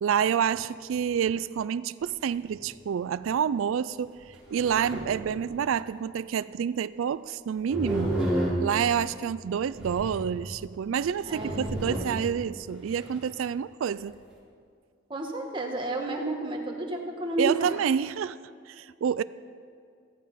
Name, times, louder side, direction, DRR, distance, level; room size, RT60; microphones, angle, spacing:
voice 1, 0.0-8.2 8.6-14.2 17.4-18.4 18.7-19.2, right 8 dB, 85° right, 16 dB, 0.3 m, -28 dB
sound 1, 2.0-2.1 2.4-2.5 3.3-3.4 4.2-5.7 7.7-9.0 9.7-10.5 10.9-11.0 11.3-12.3 12.7-13.2, right 1 dB, 5° right, 4.3 m, -31 dB
voice 2, 11.2-11.8 15.1-17.7, right 2 dB, 25° right, 0 dB, 1.8 m, -31 dB
15.5 x 14.0 x 5.6 m, 2.3 s
head